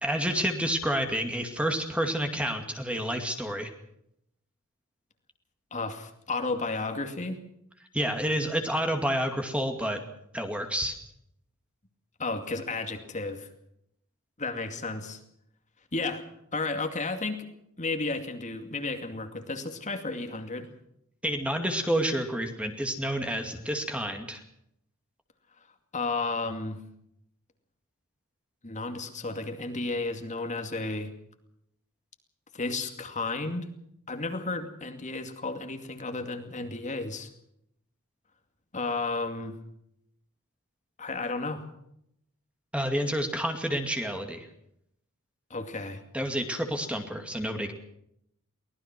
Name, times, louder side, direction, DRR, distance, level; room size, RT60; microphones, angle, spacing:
voice 1, 0.0-3.7 7.9-10.0 10.3-11.0 21.2-24.4 42.7-44.5 46.1-47.7, equal, 5° right, 5 dB, 2.3 m, -29 dB
voice 2, 5.7-7.4 12.2-13.5 14.4-15.2 15.9-16.2 16.5-17.5 17.8-20.7 25.9-26.8 28.6-31.1 32.5-33.7 34.1-37.3 38.7-39.6 41.0-41.6 45.5-46.0, left 3 dB, 35° left, 5 dB, 2.4 m, -33 dB
24.0 x 18.5 x 6.1 m, 0.76 s
head